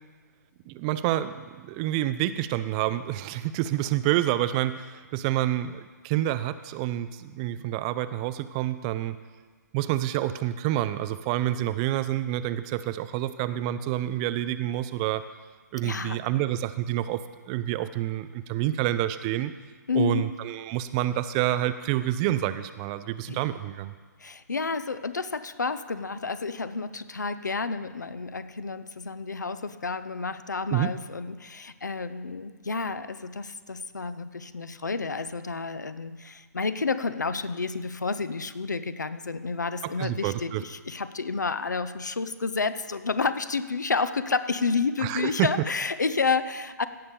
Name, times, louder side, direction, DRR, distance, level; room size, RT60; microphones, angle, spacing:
voice 1, 0.7-9.2 9.7-15.2 15.7-17.2 17.5-19.5 19.9-23.9 30.7-30.9 40.0-40.6 45.0-45.5, right 13 dB, 20° right, 13 dB, 0.3 m, -28 dB
voice 2, 15.8-16.2 19.9-20.3 23.3-23.4 24.2-46.8, left 4 dB, 70° left, 12 dB, 0.7 m, -30 dB
16.5 x 6.7 x 5.1 m, 1.5 s
figure-of-eight pair, 125°, 10 cm